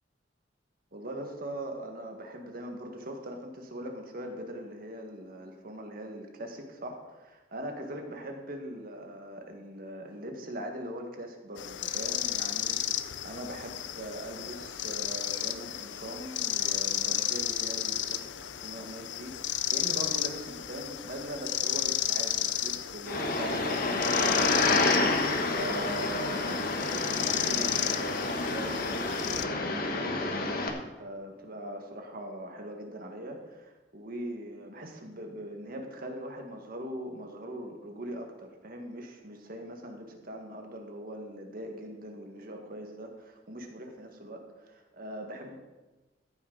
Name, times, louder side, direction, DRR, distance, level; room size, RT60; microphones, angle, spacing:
voice 1, 0.9-45.6, right 1 dB, 55° right, 3 dB, 1.8 m, -41 dB
sound 1, 11.6-29.5, left 12 dB, 85° left, 0.6 m, -33 dB
sound 2, 23.1-30.7, left 2 dB, 55° left, 1.3 m, -29 dB
14.0 x 9.2 x 4.0 m, 1.2 s
head